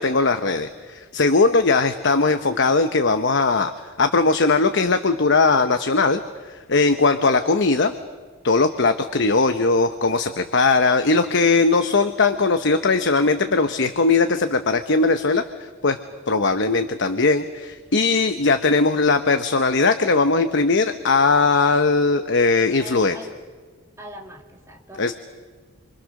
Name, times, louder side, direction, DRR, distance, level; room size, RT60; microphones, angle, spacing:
voice 1, 0.0-3.7 4.0-6.2 6.5-7.9 8.4-16.0 16.3-23.2 25.0-25.1, left 3 dB, 55° left, 8 dB, 1.0 m, -19 dB
voice 2, 22.8-23.4 24.0-25.1, right 1 dB, 15° right, 1 dB, 2.4 m, -41 dB
27.5 x 25.5 x 6.5 m, 1.5 s
head